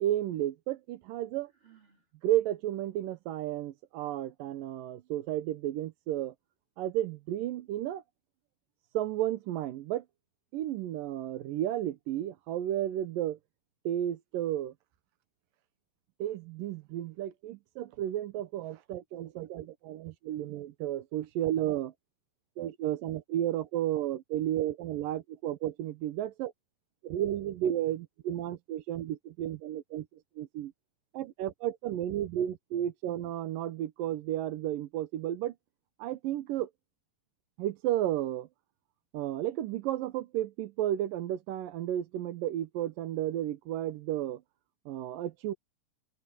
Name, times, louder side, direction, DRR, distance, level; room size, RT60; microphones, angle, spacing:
voice 1, 0.0-1.5 2.2-6.3 6.8-8.0 8.9-10.0 10.5-13.4 13.8-14.7 16.2-21.9 22.6-26.5 27.0-30.1 30.4-30.7 31.1-35.6 36.0-36.7 37.6-38.5 39.1-44.4 44.9-45.5, right 12 dB, 80° right, 2.7 m, -33 dB
Sigh, 1.4-2.1, right 9 dB, 35° right, 5.2 m, -62 dB
open air
omnidirectional pair, 3.9 m